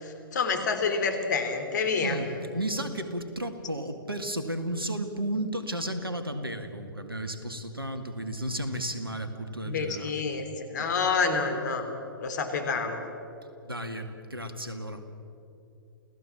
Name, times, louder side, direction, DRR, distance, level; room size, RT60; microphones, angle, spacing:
voice 1, 0.0-2.2 9.6-11.9 12.2-13.0, left 4 dB, 50° left, 7 dB, 3.3 m, -28 dB
voice 2, 2.0-10.2 10.8-10.9 13.6-15.1, right 1 dB, 85° right, 8 dB, 2.2 m, -33 dB
28.5 x 17.0 x 7.3 m, 2.9 s
figure-of-eight pair, 115°, 12 cm